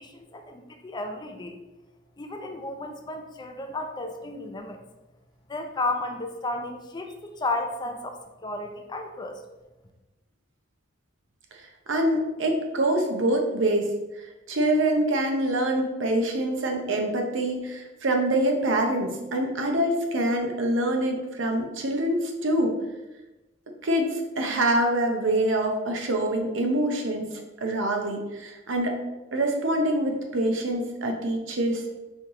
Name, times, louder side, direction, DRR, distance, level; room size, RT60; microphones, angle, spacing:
voice 1, 0.0-1.6 2.2-4.8 5.5-9.4, left 2 dB, 20° left, 4 dB, 0.4 m, -33 dB
voice 2, 11.9-13.9 14.2-22.7 23.8-27.3 27.6-29.0 29.3-31.9, right 1 dB, 75° right, 3 dB, 0.7 m, -25 dB
4.5 x 3.1 x 3.6 m, 1.0 s
head